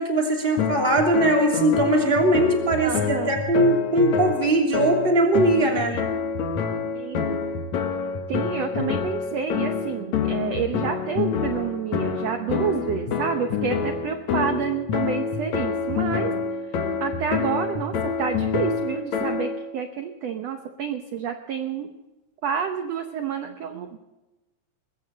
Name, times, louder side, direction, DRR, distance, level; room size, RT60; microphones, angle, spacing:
voice 1, 0.0-5.9, right 1 dB, 15° right, 1 dB, 2.6 m, -20 dB
sound 1, 0.6-19.6, left 6 dB, 60° left, 2.4 m, -27 dB
voice 2, 2.8-3.3 5.9-6.0 6.9-7.4 8.3-16.3 17.0-21.9 22.4-24.0, right 7 dB, 90° right, 7 dB, 1.4 m, -29 dB
21.0 x 16.0 x 4.1 m, 1.0 s
omnidirectional pair, 4.4 m